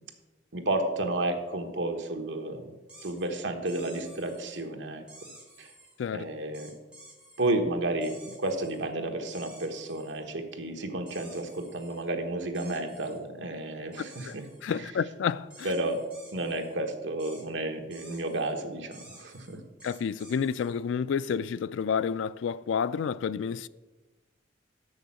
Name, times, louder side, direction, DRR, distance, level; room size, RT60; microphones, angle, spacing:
voice 1, 0.5-2.7 3.0-5.0 5.6-5.7 6.1-6.7 7.4-14.4 14.8-14.9 15.6-16.0 16.3-19.6, right 2 dB, 75° right, 1.2 m, -32 dB
sound 1, 2.9-3.3 3.7-4.6 5.1-6.0 6.5-7.5 8.0-8.8 9.2-10.2 11.1-12.0 12.5-13.2 13.9-14.8 15.5-16.8 17.2-17.4 17.9-18.5 18.9-20.8, right 2 dB, 5° right, 2.4 m, -52 dB
voice 2, 14.6-15.7 19.8-23.7, left 6 dB, 85° left, 0.3 m, -30 dB
6.9 x 6.5 x 7.4 m
head